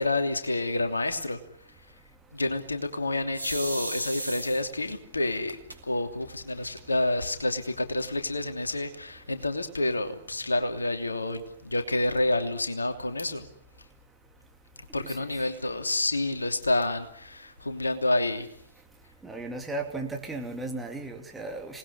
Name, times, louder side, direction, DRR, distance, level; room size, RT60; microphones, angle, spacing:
voice 1, 0.0-1.4 2.3-5.6 5.8-13.5 14.9-18.5, left 2 dB, 75° left, 7 dB, 2.9 m, -28 dB
sound 1, 3.3-4.9 5.7-5.8 6.2-6.3 6.6-7.2, right 1 dB, 80° right, 4.3 m, -35 dB
voice 2, 19.2-21.8, right 2 dB, 5° right, 2 dB, 3.0 m, -35 dB
27.0 x 20.0 x 9.8 m, 0.69 s
figure-of-eight pair, 120°, 0 cm